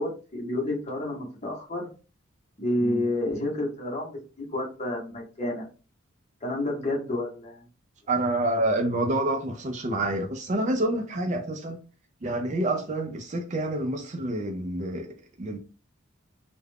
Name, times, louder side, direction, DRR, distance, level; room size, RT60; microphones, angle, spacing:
voice 1, 0.0-1.9 2.6-4.2 4.5-5.7 6.4-7.7, left 1 dB, 35° left, 0.9 m, -29 dB
voice 2, 8.1-11.8 12.2-15.6, right 1 dB, 35° right, 0.4 m, -28 dB
2.3 x 2.1 x 3.3 m
head